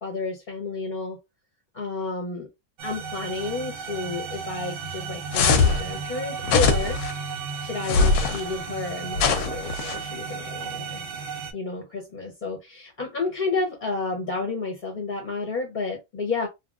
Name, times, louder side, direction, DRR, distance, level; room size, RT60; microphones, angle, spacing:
voice 1, 0.0-1.2 1.7-2.5 2.8-7.0 7.6-11.1 11.5-16.5, left 3 dB, 45° left, 0.6 m, -31 dB
sound 1, 2.8-11.5, right 5 dB, 70° right, 0.5 m, -34 dB
sound 2, 5.3-5.8 6.4-7.1 7.8-8.4 9.2-10.0, left 5 dB, 90° left, 1.2 m, -21 dB
2.9 x 2.7 x 2.3 m
omnidirectional pair, 1.6 m